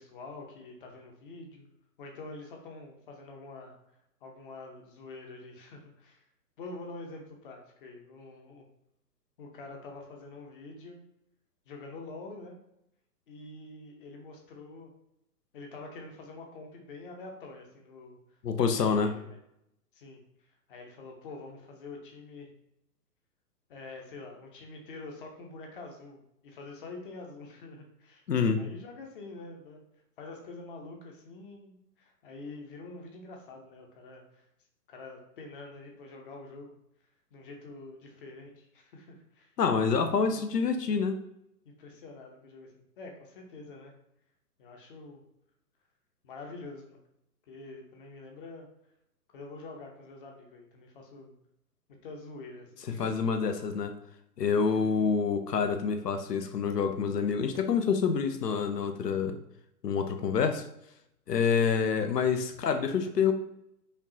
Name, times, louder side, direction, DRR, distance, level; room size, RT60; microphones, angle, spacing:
voice 1, 0.0-1.7 2.0-3.8 4.2-6.3 6.6-8.6 9.4-11.0 11.7-12.6 13.3-14.9 15.5-19.4 19.9-22.5 23.7-28.2 28.6-29.8 30.2-34.4 34.9-36.7 37.3-39.5 39.9-40.5 41.6-43.9 44.6-45.2 46.2-47.0 47.5-48.7 49.3-51.3 52.0-53.1 54.7-54.8, left 3 dB, 35° left, 2 dB, 0.7 m, -46 dB
voice 2, 18.4-19.1 28.3-28.6 39.6-41.2 53.0-53.9 54.4-59.4 59.8-60.6 61.3-63.3, left 6 dB, 85° left, 7 dB, 0.6 m, -27 dB
5.2 x 2.4 x 2.7 m, 0.80 s
figure-of-eight pair, 125°, 47 cm